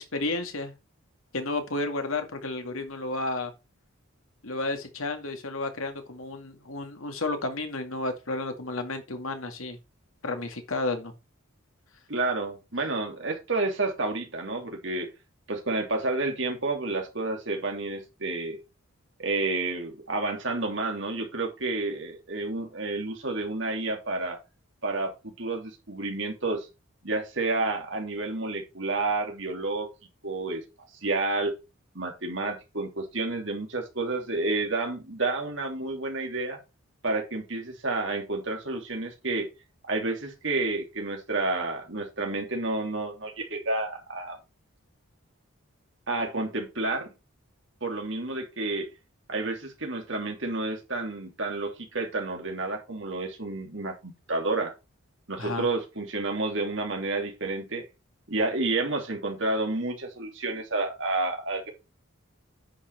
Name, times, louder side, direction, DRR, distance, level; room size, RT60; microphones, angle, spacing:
voice 1, 0.1-0.7 1.3-3.5 4.4-9.8 10.2-11.1 55.4-55.7, left 2 dB, 75° left, 2.1 m, -32 dB
voice 2, 12.1-15.1 15.5-18.6 19.2-24.4 24.8-26.7 27.0-29.9 30.2-30.6 31.0-31.6 31.9-36.6 37.0-39.5 39.9-44.4 46.1-47.1 47.8-48.9 49.3-54.7 55.3-57.8 58.3-61.7, right 2 dB, 55° right, 2.9 m, -30 dB
10.0 x 5.9 x 4.6 m
head